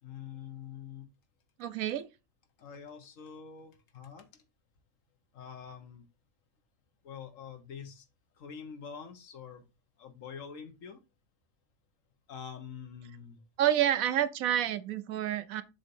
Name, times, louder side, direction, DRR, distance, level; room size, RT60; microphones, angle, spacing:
voice 1, 0.0-1.1 2.6-4.4 5.3-6.1 7.0-8.0 8.3-9.7 10.0-11.0 12.3-13.4, left 7 dB, 65° left, 1.3 m, -45 dB
voice 2, 1.6-2.1 13.6-15.6, right 11 dB, 80° right, 1.1 m, -28 dB
7.1 x 2.8 x 5.3 m
omnidirectional pair, 1.5 m